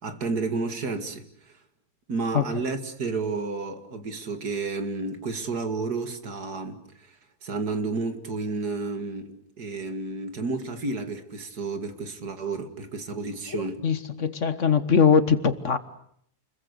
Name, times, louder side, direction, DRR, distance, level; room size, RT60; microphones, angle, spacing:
voice 1, 0.0-1.5 2.1-7.2 7.4-13.8, right 3 dB, 80° right, 2.7 m, -31 dB
voice 2, 13.5-15.8, left 6 dB, 50° left, 1.7 m, -22 dB
29.0 x 22.0 x 8.2 m
omnidirectional pair, 1.7 m